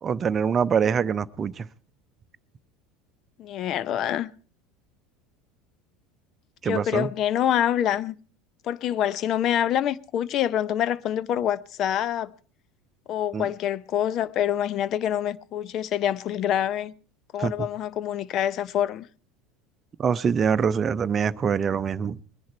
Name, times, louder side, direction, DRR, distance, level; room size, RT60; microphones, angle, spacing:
voice 1, 0.0-1.7 6.6-7.1 13.3-13.5 17.4-17.7 20.0-22.2, right 6 dB, 30° right, 0.7 m, -24 dB
voice 2, 3.4-4.3 6.6-8.1 8.6-12.3 13.1-16.9 17.3-19.1, left 10 dB, 45° left, 0.7 m, -26 dB
21.5 x 10.5 x 4.4 m
hypercardioid pair, 75°, 0 cm